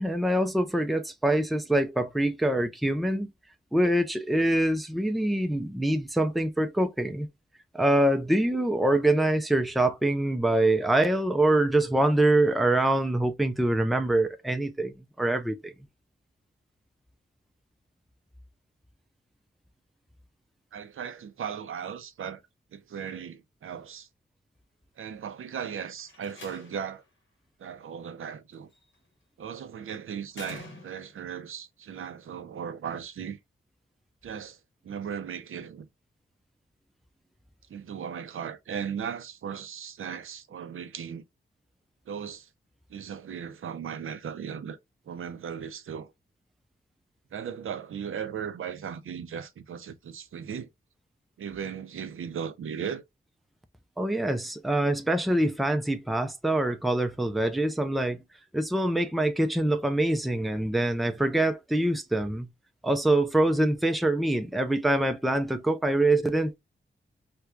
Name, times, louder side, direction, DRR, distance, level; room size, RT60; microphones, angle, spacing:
voice 1, 0.0-3.3 3.7-7.3 7.7-15.7 54.0-58.2 58.5-62.5 62.8-66.5, right 1 dB, ahead, 0.4 m, -25 dB
voice 2, 20.7-22.4 22.7-24.1 25.0-27.0 27.6-28.7 29.4-33.4 34.2-34.6 34.8-35.9 37.7-41.2 42.1-42.5 42.9-44.8 45.1-46.1 47.3-50.7 51.4-53.0, right 7 dB, 85° right, 0.5 m, -37 dB
Slam, 26.0-27.0 28.5-29.0 30.3-31.3, left 2 dB, 65° left, 1.4 m, -46 dB
4.4 x 2.2 x 2.4 m
wide cardioid pair, 140°, 21 cm